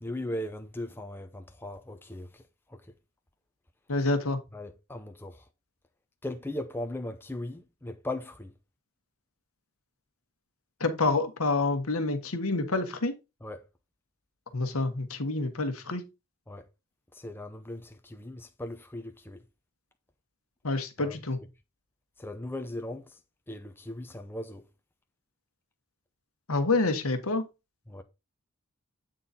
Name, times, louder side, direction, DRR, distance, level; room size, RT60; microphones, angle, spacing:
voice 1, 0.0-2.4 2.7-2.8 4.5-5.4 6.2-8.5 13.4-13.6 16.5-16.6 17.1-19.4 21.0-21.2 22.2-23.2 23.5-24.6 27.9-28.0, left 1 dB, 10° left, 0.6 m, -38 dB
voice 2, 3.9-4.4 10.8-13.1 14.5-16.1 20.6-21.4 26.5-27.4, left 3 dB, 75° left, 1.4 m, -27 dB
8.8 x 3.9 x 4.2 m
head